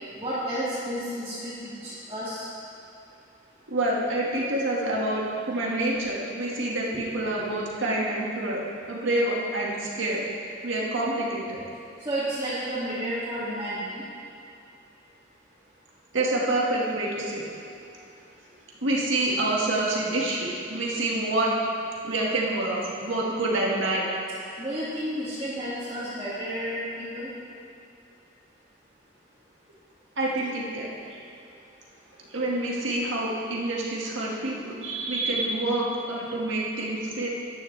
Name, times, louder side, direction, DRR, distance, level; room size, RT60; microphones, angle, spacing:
voice 1, 0.2-2.4 6.9-7.0 7.4-7.5 12.0-14.0 24.6-27.3, right 1 dB, 20° right, -12 dB, 2.4 m, -31 dB
voice 2, 3.7-8.6 8.9-10.3 10.6-11.6 16.1-17.4 18.8-21.5 22.0-24.1 30.2-30.9 32.3-37.3, right 1 dB, 85° right, -4 dB, 2.1 m, -27 dB
14.0 x 10.5 x 3.4 m, 2.6 s
head